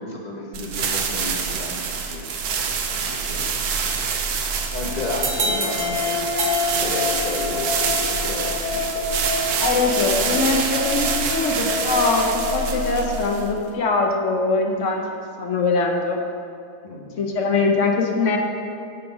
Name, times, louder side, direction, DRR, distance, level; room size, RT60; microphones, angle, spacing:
voice 1, 0.0-2.3 2.6-4.1 4.7-6.3 6.8-9.2 9.6-9.7 11.2-11.3 16.8-17.2, left 2 dB, 40° left, -1 dB, 0.6 m, -33 dB
sound 1, 0.5-13.7, right 5 dB, 90° right, 1.2 m, -26 dB
sound 2, 4.6-13.8, left 5 dB, 85° left, 1.1 m, -29 dB
sound 3, 5.1-7.7, right 3 dB, 55° right, 1.1 m, -29 dB
voice 2, 9.6-16.2 17.2-18.4, left 3 dB, 60° left, 2 dB, 0.9 m, -22 dB
6.8 x 5.0 x 5.3 m, 2.5 s
omnidirectional pair, 1.6 m